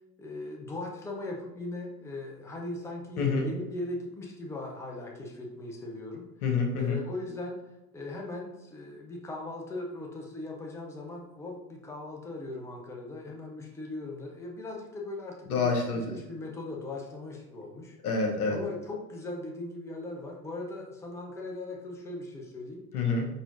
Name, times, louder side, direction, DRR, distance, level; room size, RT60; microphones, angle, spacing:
voice 1, 0.2-6.3 6.8-7.6 7.9-18.0 18.5-22.8, left 2 dB, 5° left, 0 dB, 0.7 m, -39 dB
voice 2, 3.2-3.5 6.4-7.0 15.5-16.1 18.0-18.6 22.9-23.3, left 4 dB, 75° left, 1 dB, 1.1 m, -27 dB
4.3 x 4.0 x 2.6 m, 1.0 s
figure-of-eight pair, 80°, 46 cm